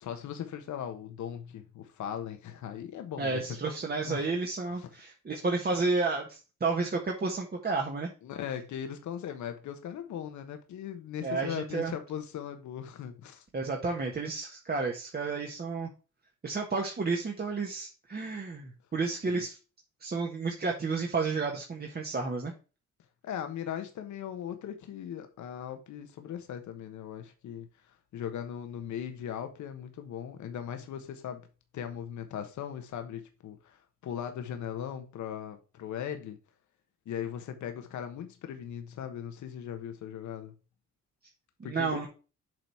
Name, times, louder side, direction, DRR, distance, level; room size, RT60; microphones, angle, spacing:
voice 1, 0.0-3.6 4.0-4.3 4.7-4.9 8.2-13.4 19.3-19.4 23.2-31.4 31.7-36.4 37.1-40.5 41.6-42.1, left 9 dB, 75° left, 1.2 m, -39 dB
voice 2, 3.2-8.1 11.2-11.9 13.5-15.9 16.4-19.6 20.0-22.5 41.6-42.1, right 4 dB, 30° right, 1.4 m, -31 dB
7.6 x 4.1 x 4.5 m
cardioid pair, 90°, 30 cm